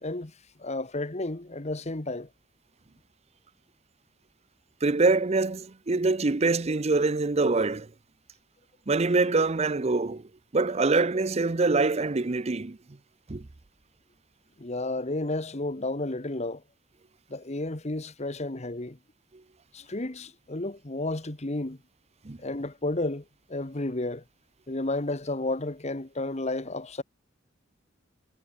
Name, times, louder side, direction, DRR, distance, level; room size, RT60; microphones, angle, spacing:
voice 1, 0.0-0.3 0.6-2.3 14.6-16.6 17.3-19.0 19.7-21.8 22.4-24.2 24.7-27.0, left 2 dB, 35° left, 1.3 m, -32 dB
voice 2, 4.8-7.9 8.9-10.2 10.5-12.8 13.3-13.4 22.3-22.4, right 3 dB, 35° right, 0.6 m, -24 dB
head